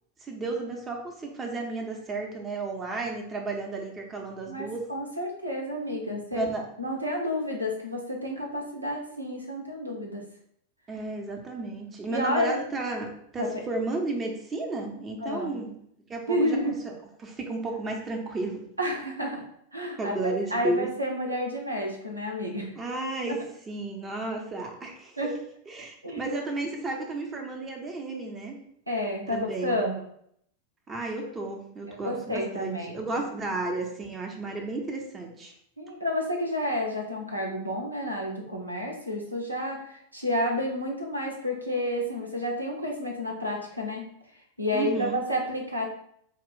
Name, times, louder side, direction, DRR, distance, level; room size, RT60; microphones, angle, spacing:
voice 1, 0.2-4.9 6.1-6.7 10.9-15.8 16.1-16.9 17.2-18.6 20.0-20.9 22.7-25.3 25.7-28.6 29.3-29.7 30.9-35.5 44.7-45.2, right 2 dB, 20° right, 1 dB, 0.9 m, -33 dB
voice 2, 4.5-6.5 6.8-10.2 12.1-12.5 13.4-13.6 15.2-15.6 16.3-16.7 18.8-19.4 19.7-22.7 25.2-25.3 26.0-26.3 28.9-30.0 31.9-32.9 35.8-44.0 44.6-45.9, left 1 dB, 85° right, 0 dB, 0.8 m, -30 dB
4.5 x 2.4 x 3.8 m, 0.69 s
figure-of-eight pair, 90°, 0 cm